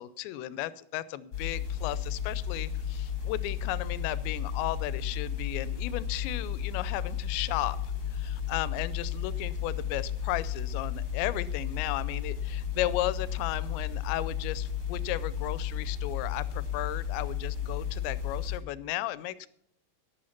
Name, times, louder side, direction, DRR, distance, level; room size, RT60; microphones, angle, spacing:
voice 1, 0.0-7.8 8.1-19.5, left 14 dB, 85° left, 17 dB, 2.8 m, -35 dB
sound 1, 1.3-18.6, left 8 dB, 30° left, 3.0 m, -33 dB
11.5 x 10.5 x 5.7 m, 0.70 s
omnidirectional pair, 5.1 m